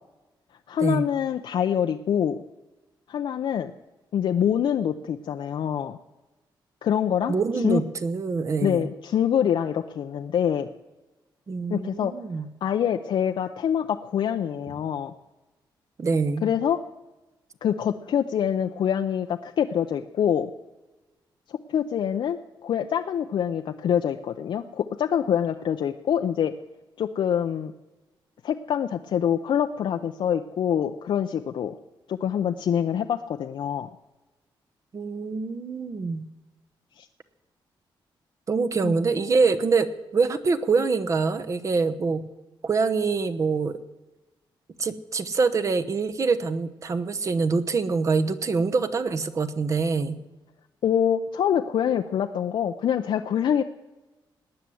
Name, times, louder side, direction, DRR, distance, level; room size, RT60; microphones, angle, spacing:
voice 1, 0.7-2.4 3.1-3.7 4.1-6.0 6.8-7.3 7.6-7.8 8.6-10.7 11.7-12.1 12.6-15.1 16.4-16.8 17.6-20.5 21.5-26.5 27.0-27.7 28.4-31.7 32.1-33.9 37.0-37.1 38.8-38.9 50.8-53.6, left 9 dB, 70° left, 6 dB, 0.6 m, -25 dB
voice 2, 7.3-8.9 11.5-12.5 16.0-16.4 34.9-36.2 38.5-42.2 42.6-43.8 44.8-50.2, right 4 dB, 35° right, 10 dB, 0.9 m, -25 dB
18.5 x 9.7 x 7.8 m, 1.1 s
wide cardioid pair, 150°, 9 cm